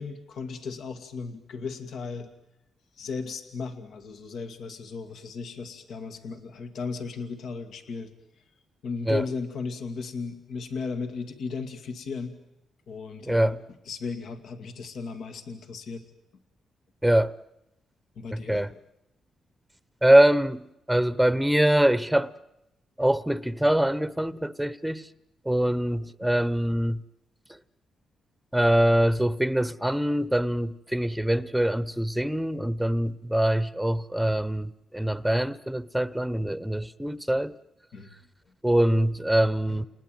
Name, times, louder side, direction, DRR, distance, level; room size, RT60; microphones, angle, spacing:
voice 1, 0.0-2.3 3.0-8.1 8.8-12.4 12.9-16.0 18.2-18.6 37.9-38.1 39.7-39.8, left 4 dB, 75° left, 2.2 m, -36 dB
voice 2, 13.3-13.6 17.0-17.3 18.3-18.7 20.0-22.3 23.0-25.0 25.5-27.0 28.5-37.6 38.6-39.8, right 1 dB, 5° right, 0.9 m, -23 dB
29.0 x 19.5 x 9.3 m
cardioid pair, 75°, 0 cm